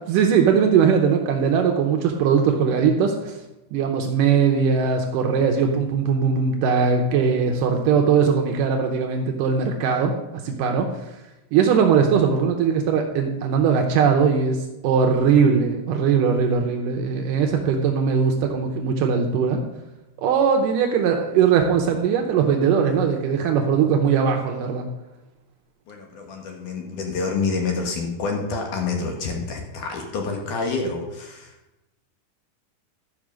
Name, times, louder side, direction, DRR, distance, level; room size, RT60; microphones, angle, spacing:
voice 1, 0.1-3.4 3.7-11.2 11.5-19.6 20.2-24.9, right 6 dB, 85° right, 2 dB, 1.9 m, -20 dB
voice 2, 25.9-31.5, left 4 dB, 65° left, 2 dB, 2.2 m, -28 dB
12.0 x 5.4 x 6.3 m, 0.99 s
omnidirectional pair, 4.9 m